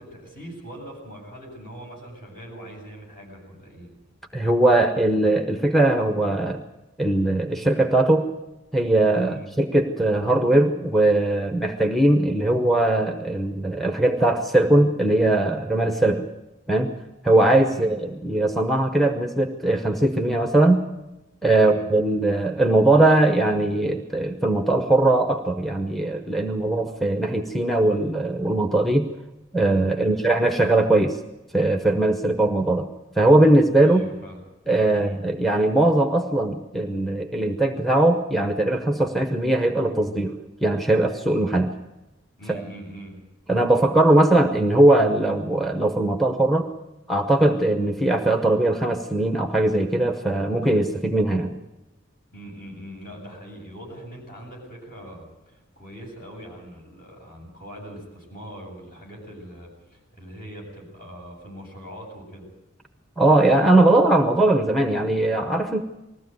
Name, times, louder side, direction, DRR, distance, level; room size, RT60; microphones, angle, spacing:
voice 1, 0.0-3.9 9.2-9.5 17.7-17.9 21.5-21.8 29.9-30.3 33.8-34.4 34.9-35.2 42.4-43.2 52.3-62.5, right 1 dB, 50° left, -1 dB, 8.0 m, -41 dB
voice 2, 4.3-6.6 7.0-8.3 8.7-16.3 16.7-16.9 17.2-20.8 21.4-29.1 29.5-31.2 31.5-32.9 33.2-34.0 34.7-41.7 42.5-42.6 43.5-46.7 47.1-51.6 63.2-65.8, right 2 dB, ahead, 6 dB, 0.8 m, -20 dB
20.5 x 15.0 x 9.3 m, 1.0 s
head